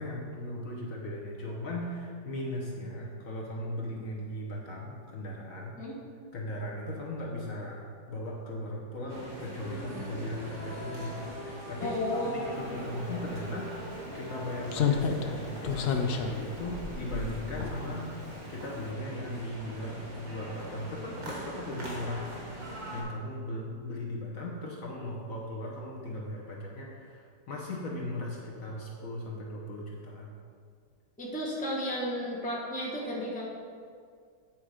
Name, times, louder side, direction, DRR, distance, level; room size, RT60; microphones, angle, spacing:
voice 1, 0.0-5.7 6.3-12.0 12.2-18.1 18.5-22.3 22.6-30.3, left 1 dB, 55° left, -3 dB, 1.3 m, -38 dB
sound 1, 9.1-23.0, right 1 dB, 60° right, 1.9 m, -42 dB
sound 2, 9.4-14.9, left 2 dB, 35° left, 1.7 m, -45 dB
voice 2, 11.8-12.8 31.2-33.4, equal, 5° left, -4 dB, 1.0 m, -33 dB
Slam, 13.3-13.4 14.7-18.2 18.5-18.7, left 6 dB, 90° left, 0.5 m, -31 dB
8.8 x 4.4 x 4.9 m, 2.2 s
omnidirectional pair, 1.8 m